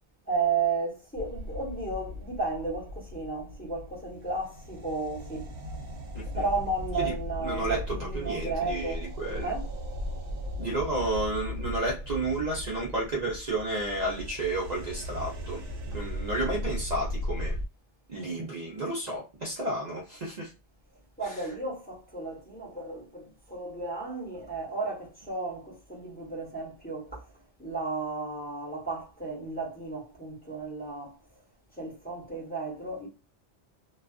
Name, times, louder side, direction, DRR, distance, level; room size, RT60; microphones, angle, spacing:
voice 1, 0.3-5.5 6.3-9.0 9.4-9.7 21.2-27.2 27.6-31.2 31.8-33.1, right 3 dB, 10° left, 1.0 m, -33 dB
sound 1, 1.2-17.7, left 1 dB, 75° right, 0.9 m, -37 dB
voice 2, 7.4-9.5 10.6-15.6 15.9-17.5 18.1-20.5, right 2 dB, 45° right, 0.7 m, -32 dB
2.3 x 2.3 x 2.3 m
omnidirectional pair, 1.2 m